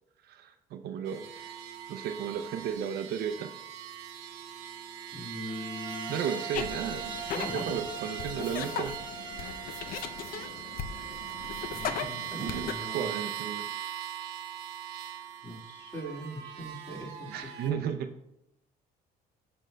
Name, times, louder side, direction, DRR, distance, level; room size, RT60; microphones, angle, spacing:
voice 1, 0.2-1.6 1.9-3.5 6.1-7.1 7.5-9.0 12.4-13.7 17.3-18.1, right 8 dB, 70° right, 7 dB, 0.5 m, -34 dB
sound 1, 1.1-17.7, right 10 dB, 90° right, 0.9 m, -41 dB
voice 2, 5.1-6.1 7.3-7.8 11.7-13.1 15.4-17.9, equal, 15° left, -2 dB, 2.1 m, -41 dB
sound 2, 5.5-10.3, right 3 dB, 30° right, 0.9 m, -42 dB
sound 3, 6.5-12.7, left 7 dB, 60° left, 0.5 m, -38 dB
14.0 x 5.3 x 2.2 m, 0.84 s
cardioid pair, 110°, 17 cm